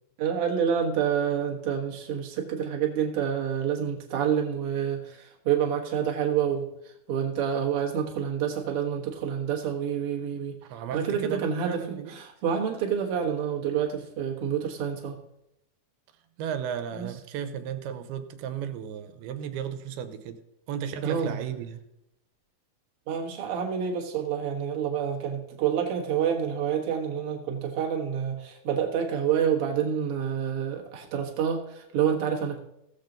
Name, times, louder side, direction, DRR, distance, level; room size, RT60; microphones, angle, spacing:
voice 1, 0.2-6.7 7.1-10.6 10.9-15.2 16.9-17.1 21.0-21.4 23.1-32.6, right 8 dB, 55° right, 0 dB, 1.7 m, -28 dB
voice 2, 10.7-12.2 16.4-20.4 20.7-21.8, right 8 dB, 85° right, 9 dB, 2.8 m, -34 dB
16.5 x 7.4 x 3.9 m, 0.84 s
omnidirectional pair, 4.3 m